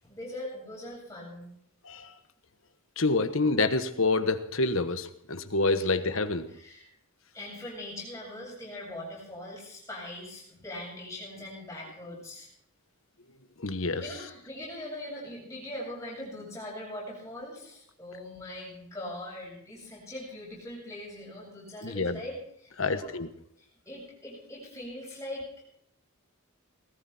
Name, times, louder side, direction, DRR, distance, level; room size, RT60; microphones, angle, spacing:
voice 1, 0.0-1.5 5.8-5.9 6.5-6.8 7.3-12.5 14.0-23.1 23.6-25.6, left 1 dB, 15° left, -4 dB, 7.7 m, -41 dB
voice 2, 3.0-6.5 13.6-14.0 21.8-22.2 22.8-23.3, left 3 dB, 65° left, 10 dB, 1.3 m, -27 dB
19.5 x 14.0 x 4.4 m, 0.70 s
head